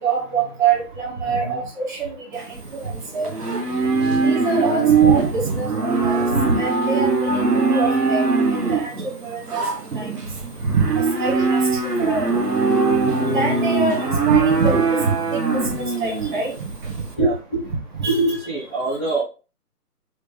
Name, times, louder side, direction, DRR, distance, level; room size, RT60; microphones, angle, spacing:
voice 1, 0.0-2.4 2.7-2.8 3.1-3.3 4.2-8.2 8.7-8.9 9.2-9.6 9.9-10.2 10.6-11.6 12.0-12.3 13.1-15.0 15.5-16.5 18.0-18.2 19.1-19.2, right 4 dB, 30° right, -2 dB, 1.7 m, -24 dB
voice 2, 1.2-1.7 3.9-4.3 17.1-17.7 18.1-19.2, right 2 dB, 10° right, -9 dB, 0.7 m, -24 dB
Livestock farm animals working animals, 2.3-17.1, right 4 dB, 75° right, 1.5 m, -21 dB
6.4 x 2.4 x 3.3 m, 0.34 s
figure-of-eight pair, 155°, 48 cm